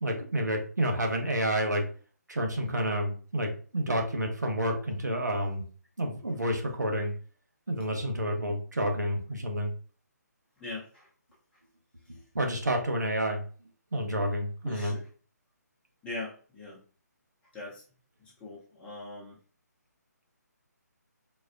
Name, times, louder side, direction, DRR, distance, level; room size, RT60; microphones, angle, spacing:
voice 1, 0.0-1.8 2.3-5.6 6.0-7.1 7.7-9.7 12.1-13.4 13.9-14.9, equal, 80° right, 2 dB, 0.9 m, -29 dB
voice 2, 10.6-11.1 14.6-15.1 16.0-16.8 17.5-17.8 18.2-19.4, left 2 dB, 10° left, -6 dB, 0.8 m, -41 dB
3.9 x 2.1 x 2.5 m, 0.40 s
figure-of-eight pair, 145°, 9 cm